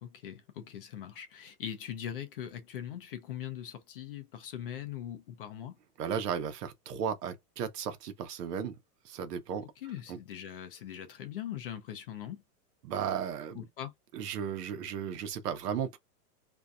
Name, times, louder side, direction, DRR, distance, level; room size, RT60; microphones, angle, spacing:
voice 1, 0.0-5.8 9.8-12.4 13.5-13.9, left 10 dB, 40° left, 0.4 m, -41 dB
voice 2, 6.0-8.7 9.0-9.7 10.1-10.2 12.8-13.7 14.1-16.0, right 8 dB, 80° right, 0.9 m, -35 dB
2.6 x 2.2 x 2.5 m
supercardioid pair, 160°, 47 cm